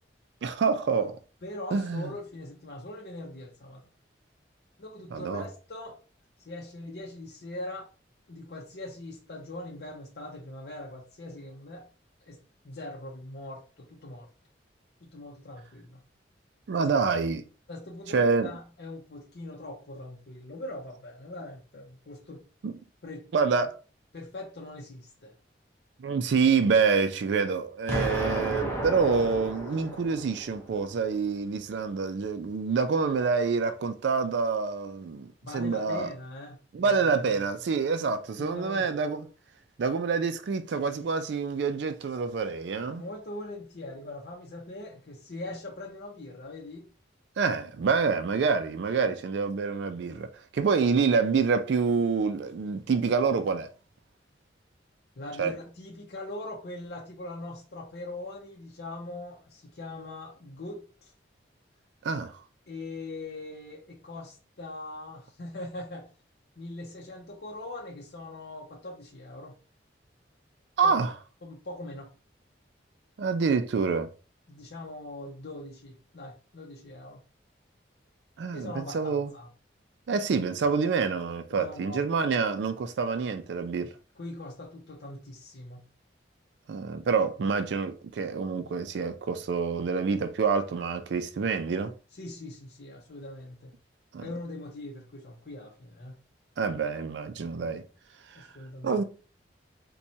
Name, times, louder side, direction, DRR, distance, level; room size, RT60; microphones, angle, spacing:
voice 1, 0.4-1.2 1.7-2.1 5.1-5.4 16.7-17.4 18.1-18.5 22.6-22.7 23.3-23.8 26.0-35.3 35.5-36.1 36.7-39.3 39.8-43.0 47.4-50.3 50.5-53.7 55.4-55.6 62.0-62.3 70.8-71.1 73.2-74.1 78.4-79.3 80.1-83.9 86.7-91.9 94.1-94.3 96.6-97.8 98.4-98.5 98.8-99.0, right 5 dB, 75° right, 0.4 m, -27 dB
voice 2, 1.4-3.9 4.8-6.0 6.4-7.9 8.3-11.9 12.2-12.4 12.6-14.3 15.0-16.0 16.8-16.9 17.7-22.4 23.0-23.3 24.1-25.3 35.4-37.4 38.4-38.9 42.9-46.9 49.0-49.2 55.2-61.1 62.7-66.1 66.6-69.6 70.8-70.9 71.4-72.1 74.5-77.2 78.5-79.5 81.5-82.0 83.8-85.8 92.1-93.7 94.2-96.2 98.3-99.0, left 2 dB, 60° left, 0.6 m, -41 dB
Explosion, 27.9-30.9, right 1 dB, 15° left, 0.6 m, -33 dB
4.3 x 2.2 x 2.6 m
head